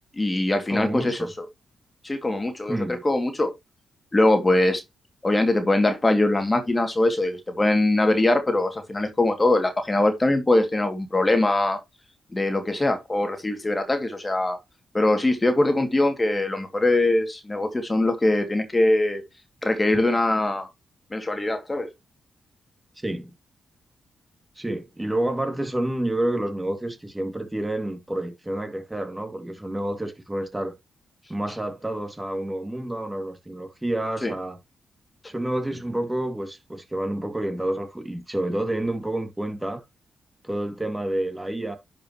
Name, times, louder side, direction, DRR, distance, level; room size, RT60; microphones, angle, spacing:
voice 1, 0.1-1.5 2.0-2.8 3.0-3.5 4.1-4.8 5.2-11.8 12.3-14.6 14.9-19.2 19.6-20.7 21.1-21.9 34.2-34.3, left 2 dB, 25° left, 2.3 m, -22 dB
voice 2, 0.7-1.3 2.7-3.0 23.0-23.3 24.6-30.7 31.3-34.6 35.3-39.8 40.4-41.8, right 1 dB, 15° right, 2.3 m, -29 dB
10.5 x 5.5 x 3.0 m
supercardioid pair, 50°, 0 cm